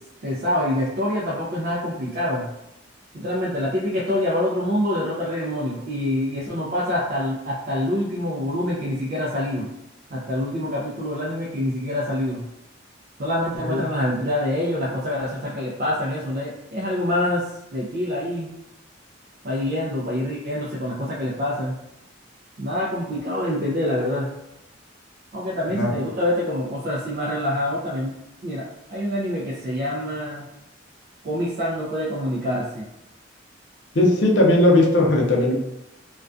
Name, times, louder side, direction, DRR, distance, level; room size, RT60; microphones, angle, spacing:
voice 1, 0.2-2.5 3.1-9.7 10.1-12.4 13.2-18.5 19.4-21.8 22.6-24.3 25.3-28.1 28.4-30.5 31.2-32.8, left 1 dB, 50° right, -5 dB, 0.4 m, -26 dB
voice 2, 33.9-35.5, left 1 dB, 65° left, -1 dB, 0.5 m, -18 dB
2.2 x 2.2 x 2.5 m, 0.86 s
head